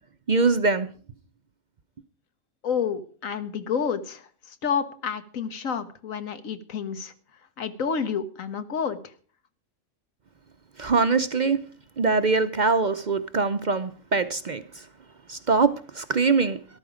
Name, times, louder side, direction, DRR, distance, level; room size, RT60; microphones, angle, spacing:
voice 1, 0.3-0.9 10.8-11.6 12.0-14.6 15.3-16.6, right 4 dB, 45° right, 11 dB, 0.7 m, -23 dB
voice 2, 2.6-7.1 7.6-9.1, left 6 dB, 85° left, 10 dB, 1.6 m, -29 dB
13.5 x 12.0 x 5.0 m, 0.41 s
omnidirectional pair, 1.4 m